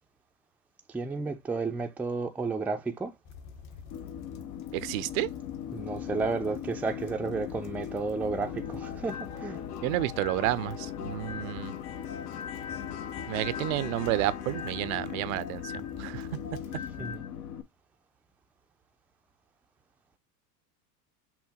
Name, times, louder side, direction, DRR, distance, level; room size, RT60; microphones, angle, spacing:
voice 1, 0.9-3.1 5.7-9.6 17.0-17.2, right 4 dB, 5° right, 0.4 m, -32 dB
sound 1, 3.2-17.2, left 6 dB, 55° left, 1.2 m, -48 dB
sound 2, 3.9-17.6, left 9 dB, 70° left, 1.0 m, -39 dB
voice 2, 4.7-5.3 9.8-11.7 13.3-15.7 16.0-16.3, right 16 dB, 60° right, 0.6 m, -30 dB
sound 3, 8.5-11.8 12.1-16.2 16.4-17.3, left 6 dB, 90° left, 2.2 m, -45 dB
5.8 x 2.2 x 4.2 m
hypercardioid pair, 100°, 48 cm